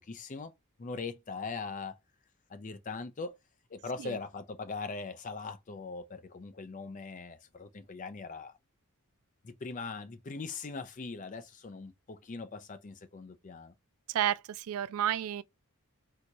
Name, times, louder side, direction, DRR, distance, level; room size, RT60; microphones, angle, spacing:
voice 1, 0.1-0.5 0.8-2.0 2.5-3.4 3.7-8.6 9.4-13.7, left 4 dB, 35° left, 0.4 m, -41 dB
voice 2, 14.1-15.4, right 11 dB, 75° right, 0.3 m, -31 dB
3.4 x 2.7 x 2.9 m
head